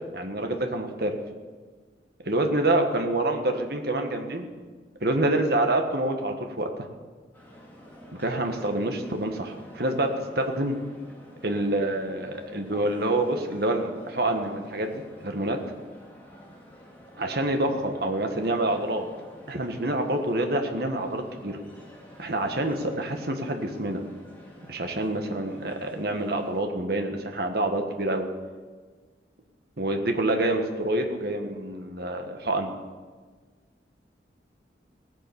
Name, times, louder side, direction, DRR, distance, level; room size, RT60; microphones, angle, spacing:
voice 1, 0.1-1.2 2.2-4.5 5.0-6.7 8.2-10.8 11.4-14.9 15.2-15.6 17.2-19.0 19.5-21.6 22.2-24.0 24.7-28.3 29.8-32.7, right 1 dB, 55° right, 4 dB, 1.6 m, -27 dB
sound 1, 7.3-26.6, equal, 10° left, 3.1 m, -49 dB
17.0 x 10.0 x 7.1 m, 1.5 s
head